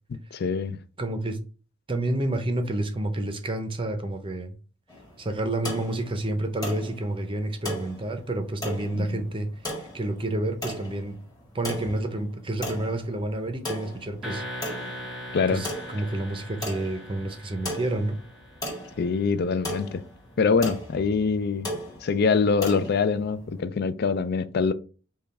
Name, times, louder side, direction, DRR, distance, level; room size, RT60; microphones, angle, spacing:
voice 1, 0.1-0.8 9.0-9.2 15.3-15.6 19.0-20.0 20.4-21.7 22.0-24.7, left 5 dB, 50° left, 0.4 m, -24 dB
voice 2, 1.0-1.4 1.9-4.6 5.2-11.2 11.5-14.4 15.5-18.2, right 1 dB, 25° right, 0.6 m, -29 dB
sound 1, 4.9-23.6, equal, 20° left, 1.6 m, -38 dB
sound 2, 14.2-19.1, equal, 5° right, 1.1 m, -40 dB
5.4 x 2.3 x 4.1 m
head